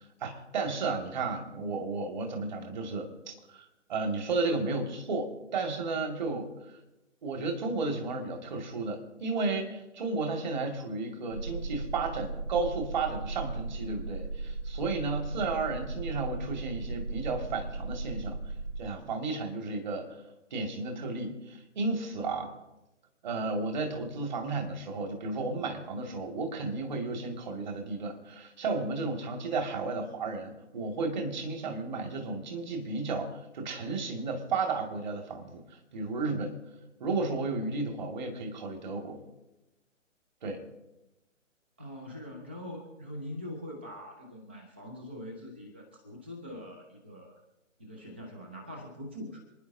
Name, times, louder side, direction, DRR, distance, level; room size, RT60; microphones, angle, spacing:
voice 1, 0.2-6.5 7.2-18.4 18.8-20.2 20.5-22.5 23.2-35.6 35.9-36.5 37.0-39.2 40.4-40.6, right 3 dB, 35° right, 3 dB, 2.2 m, -33 dB
sound 1, 11.3-18.8, right 3 dB, 70° right, 5.5 m, -37 dB
voice 2, 41.8-47.4 47.8-49.4, left 1 dB, 10° right, 1 dB, 0.5 m, -43 dB
27.0 x 10.0 x 2.7 m, 0.98 s
figure-of-eight pair, 140°, 39 cm